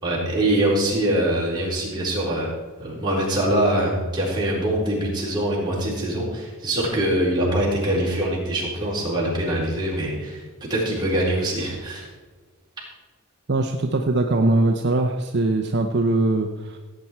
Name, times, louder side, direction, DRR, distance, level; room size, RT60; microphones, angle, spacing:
voice 1, 0.0-2.5 2.8-10.4 10.7-12.1, right 1 dB, 20° right, -5 dB, 4.3 m, -23 dB
voice 2, 13.5-16.8, right 2 dB, 50° right, 4 dB, 0.7 m, -21 dB
17.0 x 8.8 x 4.6 m, 1.3 s
head